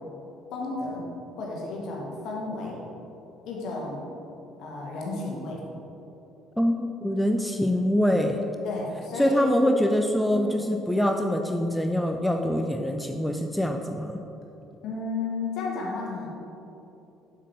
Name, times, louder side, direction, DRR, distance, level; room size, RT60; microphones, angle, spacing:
voice 1, 0.5-1.1 1.4-2.8 3.5-4.1 4.6-5.6 8.6-9.9 10.3-10.6 14.8-16.3, left 3 dB, 55° left, -2 dB, 1.4 m, -32 dB
voice 2, 6.6-8.4 9.2-14.1, equal, 5° left, 4 dB, 0.4 m, -24 dB
7.5 x 6.3 x 3.4 m, 3.0 s
figure-of-eight pair, 50°, 0 cm